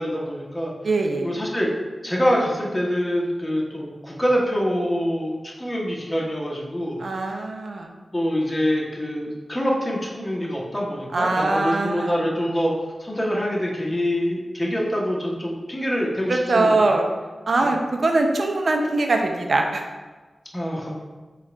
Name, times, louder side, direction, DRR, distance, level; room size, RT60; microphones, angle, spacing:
voice 1, 0.0-0.7 1.2-1.7 2.0-7.0 8.1-12.7 13.0-16.8 17.6-17.7 20.5-20.9, equal, 15° left, -3 dB, 1.1 m, -25 dB
voice 2, 0.8-1.3 7.0-7.9 11.1-12.1 16.3-17.0 17.5-19.8, right 2 dB, 65° right, 3 dB, 0.6 m, -22 dB
4.6 x 2.4 x 4.4 m, 1.3 s
cardioid pair, 55°, 0 cm